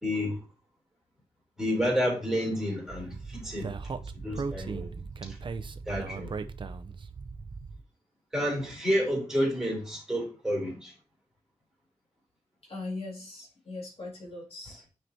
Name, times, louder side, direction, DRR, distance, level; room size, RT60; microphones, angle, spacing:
voice 1, 0.0-0.4 1.6-3.7 4.1-4.9 5.2-5.4 5.9-6.3 8.3-10.9, equal, 5° right, 3.2 m, -30 dB
Speech, 2.9-7.8, right 4 dB, 45° right, 0.5 m, -38 dB
voice 2, 12.6-14.8, left 2 dB, 55° left, 2.3 m, -40 dB
9.4 x 4.4 x 2.7 m
wide cardioid pair, 110°, 12 cm